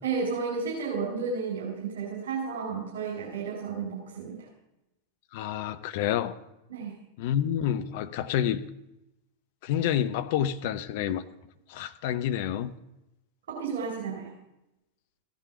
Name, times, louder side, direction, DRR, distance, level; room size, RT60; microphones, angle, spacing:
voice 1, 0.0-4.5 6.7-6.9 13.5-14.3, right 5 dB, 60° right, -2 dB, 4.2 m, -32 dB
voice 2, 5.3-6.3 7.2-8.6 9.6-11.2 11.7-12.7, left 10 dB, 50° left, 10 dB, 0.9 m, -28 dB
15.0 x 9.2 x 7.0 m, 0.90 s
figure-of-eight pair, 90°, 0 cm